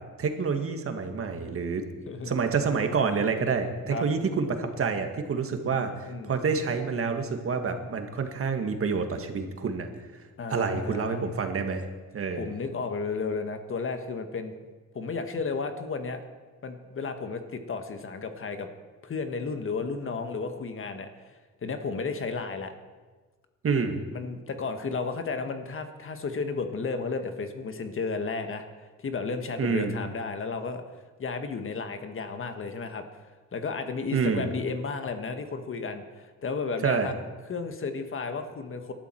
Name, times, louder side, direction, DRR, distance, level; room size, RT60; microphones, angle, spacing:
voice 1, 0.2-1.8 2.3-5.9 6.3-9.9 10.5-11.8 12.1-12.5 23.6-24.0 29.6-30.0 34.1-34.5 36.8-37.1, right 5 dB, 50° right, 6 dB, 1.7 m, -27 dB
voice 2, 5.7-6.3 10.4-11.2 12.4-14.5 14.9-16.2 16.6-18.7 19.0-21.1 21.6-22.7 24.1-30.8 31.2-33.0 33.5-37.1 37.4-38.9, left 4 dB, 45° left, 7 dB, 1.5 m, -33 dB
18.5 x 12.0 x 4.5 m, 1.3 s
cardioid pair, 90°, 30 cm